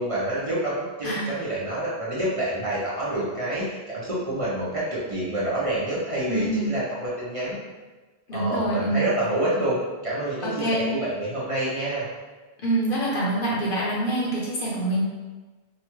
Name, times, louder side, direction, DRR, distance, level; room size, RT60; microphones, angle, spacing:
voice 1, 0.0-7.6 8.3-12.1, right 1 dB, 40° right, -8 dB, 0.6 m, -27 dB
voice 2, 6.3-6.8 8.3-9.1 10.4-11.0 12.6-15.0, right 1 dB, 60° left, -4 dB, 0.8 m, -25 dB
2.8 x 2.2 x 2.9 m, 1.3 s
omnidirectional pair, 1.0 m